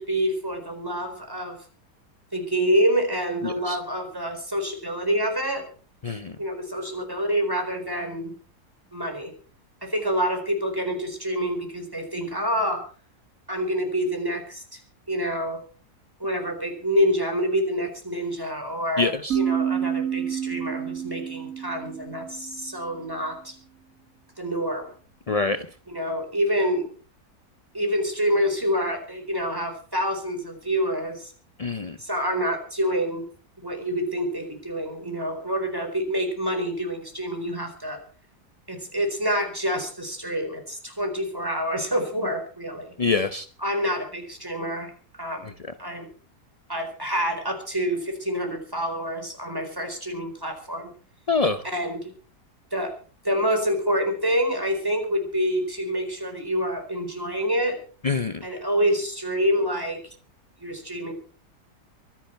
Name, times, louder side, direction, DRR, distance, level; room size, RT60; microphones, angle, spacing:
voice 1, 0.0-1.6 2.3-5.6 6.4-8.4 8.9-9.3 9.8-12.8 13.5-14.8 15.1-15.6 16.2-23.5 24.4-24.9 25.9-26.9 27.7-31.3 32.0-33.3 33.6-38.0 38.7-42.9 43.6-45.5 45.8-46.1 46.7-50.9 51.6-52.1 52.7-52.9 53.2-57.7 58.4-60.0 60.6-61.1, equal, 15° right, 5 dB, 4.6 m, -27 dB
voice 2, 3.4-3.8 6.0-6.3 19.0-19.4 25.3-25.6 31.6-32.0 43.0-43.5 51.3-51.6 58.0-58.4, left 4 dB, 40° left, 9 dB, 0.5 m, -25 dB
sound 1, 19.3-22.9, right 9 dB, 55° right, 1.7 m, -29 dB
24.0 x 10.5 x 4.6 m, 0.40 s
omnidirectional pair, 1.7 m